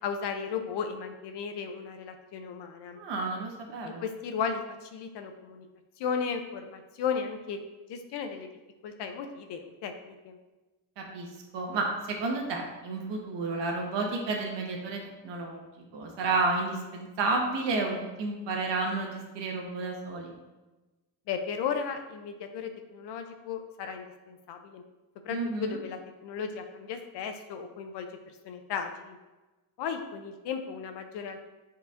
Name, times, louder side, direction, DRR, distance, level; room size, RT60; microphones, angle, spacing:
voice 1, 0.0-3.0 4.0-5.6 6.0-7.6 7.9-8.5 8.8-10.4 21.3-24.8 25.2-29.2 29.8-31.5, left 6 dB, 60° left, 6 dB, 0.8 m, -35 dB
voice 2, 3.0-4.0 11.0-11.3 11.5-15.6 15.9-20.3 25.3-25.8, right 3 dB, 60° right, 0 dB, 1.6 m, -31 dB
8.2 x 4.6 x 2.6 m, 1.1 s
cardioid pair, 140°, 48 cm